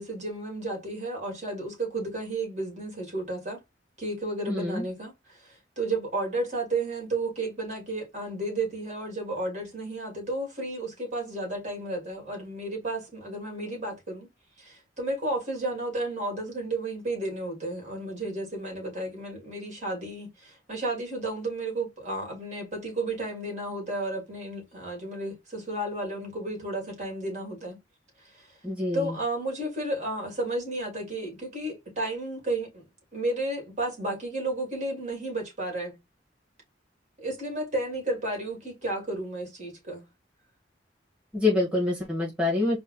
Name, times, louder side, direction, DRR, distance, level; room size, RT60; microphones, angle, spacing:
voice 1, 0.0-3.6 4.0-14.3 14.6-27.8 28.2-28.5 28.9-32.8 33.1-36.0 37.2-40.0, right 2 dB, 40° right, 2.6 m, -32 dB
voice 2, 4.5-4.8 28.6-29.2 41.3-42.8, left 2 dB, 5° right, 1.8 m, -26 dB
4.4 x 2.5 x 3.8 m
head